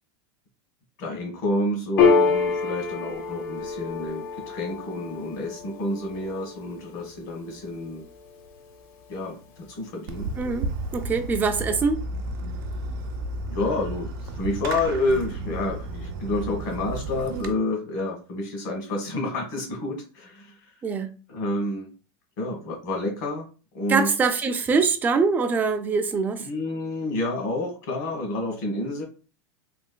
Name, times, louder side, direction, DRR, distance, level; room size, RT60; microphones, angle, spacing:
voice 1, 1.0-8.0 9.1-10.3 13.4-20.5 21.3-21.9 22.4-23.5 23.7-24.1 26.4-29.0, left 2 dB, 65° left, 1.4 m, -29 dB
Piano, 2.0-8.9, left 5 dB, 45° left, 0.8 m, -27 dB
Fireworks, 10.1-17.5, right 2 dB, 70° right, 0.6 m, -33 dB
voice 2, 10.4-12.0 20.8-21.1 23.9-26.5, right 4 dB, 15° right, 0.3 m, -23 dB
3.3 x 2.9 x 2.2 m
supercardioid pair, 155°, 12 cm